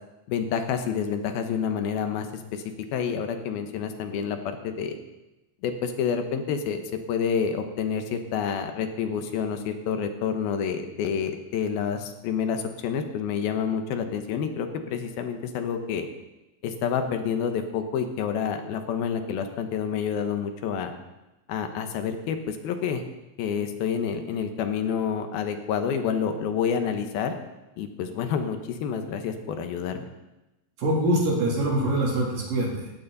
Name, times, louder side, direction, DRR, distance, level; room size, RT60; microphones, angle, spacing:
voice 1, 0.3-2.6 2.9-5.0 5.6-16.1 16.6-20.9 21.5-23.0 23.4-27.3 27.8-30.0, left 7 dB, 85° left, 7 dB, 3.1 m, -28 dB
voice 2, 30.8-32.9, right 1 dB, 65° right, -3 dB, 5.0 m, -24 dB
18.0 x 16.0 x 4.1 m, 1.0 s
omnidirectional pair, 4.3 m